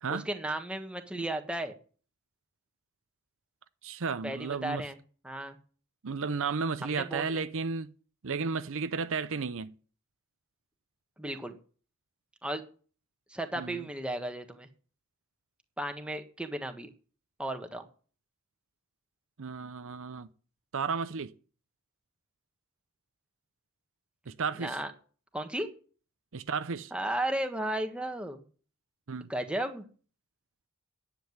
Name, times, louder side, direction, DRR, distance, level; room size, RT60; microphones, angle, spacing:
voice 1, 0.1-1.7 4.2-5.0 5.2-5.6 6.8-7.4 11.2-11.6 12.4-12.6 13.3-14.7 15.8-16.9 17.4-17.9 24.6-24.9 25.3-25.7 26.9-28.4 29.3-29.8, right 1 dB, 5° right, 1.5 m, -34 dB
voice 2, 3.8-4.8 6.0-7.9 8.2-9.7 13.6-13.9 19.4-20.3 20.7-21.3 24.3-24.8 26.3-26.9 29.1-29.3, right 5 dB, 65° right, 0.7 m, -33 dB
10.5 x 7.7 x 9.5 m
head